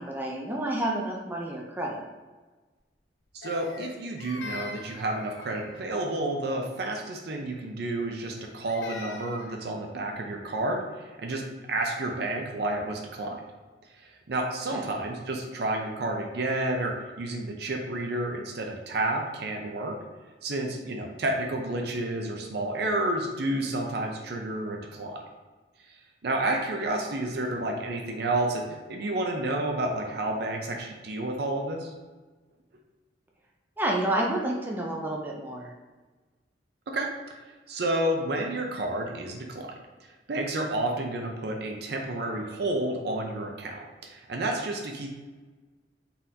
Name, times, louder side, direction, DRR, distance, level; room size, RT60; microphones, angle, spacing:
voice 1, 0.0-2.0 14.7-14.8 26.5-26.6 33.8-35.7, right 1 dB, 10° right, -2 dB, 0.5 m, -29 dB
voice 2, 3.3-11.4 11.7-13.4 14.3-20.0 20.4-25.2 26.2-31.9 36.9-37.1 37.7-39.7 40.3-45.1, right 1 dB, 65° right, 2 dB, 0.6 m, -30 dB
Crying sobbing, 3.4-5.9 8.2-9.6, left 3 dB, 80° left, 0.5 m, -42 dB
4.2 x 3.7 x 2.8 m, 1.3 s
head